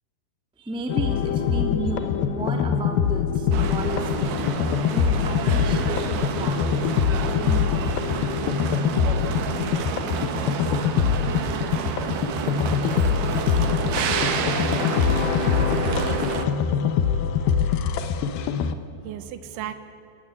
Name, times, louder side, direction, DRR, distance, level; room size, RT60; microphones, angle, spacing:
voice 1, 0.6-4.2 4.9-6.0 6.3-6.9 7.2-8.0, right 2 dB, 5° right, 3 dB, 0.7 m, -33 dB
sound 1, 0.9-18.7, left 7 dB, 70° left, 2.5 m, -24 dB
sound 2, 3.5-16.4, right 7 dB, 60° right, 2.5 m, -29 dB
voice 2, 16.4-17.2 17.4-17.7 18.5-18.7 19.0-19.8, right 11 dB, 90° right, 10 dB, 3.8 m, -40 dB
29.0 x 18.5 x 9.8 m, 2.7 s
omnidirectional pair, 5.2 m